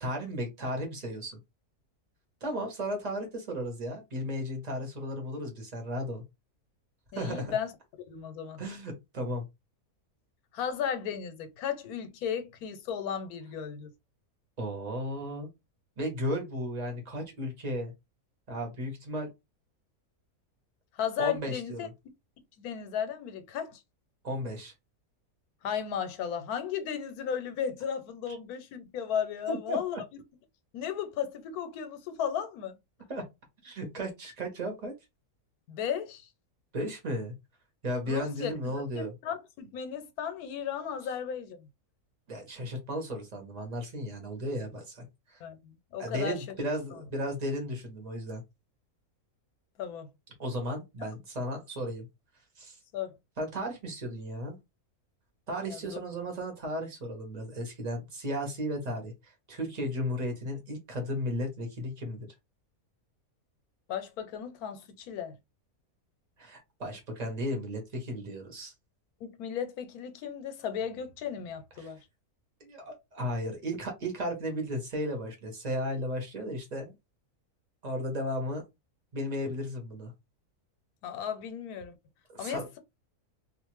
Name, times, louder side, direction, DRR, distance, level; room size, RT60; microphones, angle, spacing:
voice 1, 0.0-1.4 2.4-6.2 7.1-7.5 8.6-9.4 14.6-15.5 16.0-17.9 18.5-19.3 21.2-21.9 24.2-24.7 29.5-29.8 33.1-33.2 33.6-34.9 36.7-37.4 37.8-39.1 42.3-45.4 46.0-48.4 50.4-52.1 52.6-52.8 53.4-54.6 55.5-62.3 66.4-68.7 71.8-71.9 72.6-76.9 77.8-78.6 79.1-80.1 82.3-82.7, equal, 35° right, 0.9 m, -35 dB
voice 2, 7.1-7.7 8.1-8.6 10.5-13.9 20.9-21.9 22.6-23.8 25.6-30.0 30.7-32.8 35.7-36.3 38.1-41.7 45.4-46.4 49.8-50.1 52.9-53.1 55.7-56.0 63.9-65.3 69.2-72.0 81.0-81.9 82.4-82.8, left 8 dB, 85° left, 1.1 m, -35 dB
2.4 x 2.4 x 3.0 m
omnidirectional pair, 1.6 m